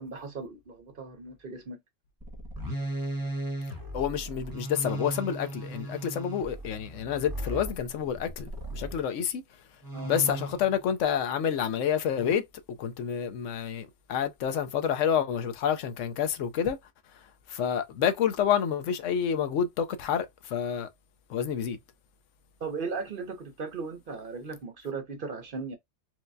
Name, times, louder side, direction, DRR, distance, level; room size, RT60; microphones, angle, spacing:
voice 1, 0.0-1.8 9.9-10.1 22.6-25.8, right 4 dB, 50° right, 0.8 m, -37 dB
sound 1, 2.2-9.0 9.8-10.8 12.1-12.3, right 1 dB, 20° right, 1.0 m, -36 dB
voice 2, 3.9-9.4 10.1-16.8 17.1-17.2 17.5-20.9 21.3-21.8, left 8 dB, 75° left, 1.0 m, -29 dB
4.6 x 2.2 x 2.6 m
omnidirectional pair, 1.3 m